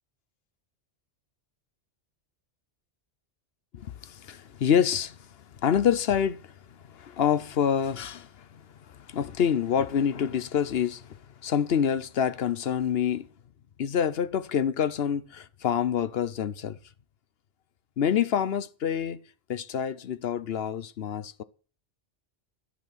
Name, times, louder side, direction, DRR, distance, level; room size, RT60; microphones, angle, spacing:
voice 1, 3.7-5.2 5.6-6.5 6.9-8.6 8.9-11.2 11.4-13.3 13.8-16.8 18.0-19.2 19.5-21.4, left 8 dB, 60° left, 0.9 m, -27 dB
14.0 x 7.6 x 6.2 m
omnidirectional pair, 1.2 m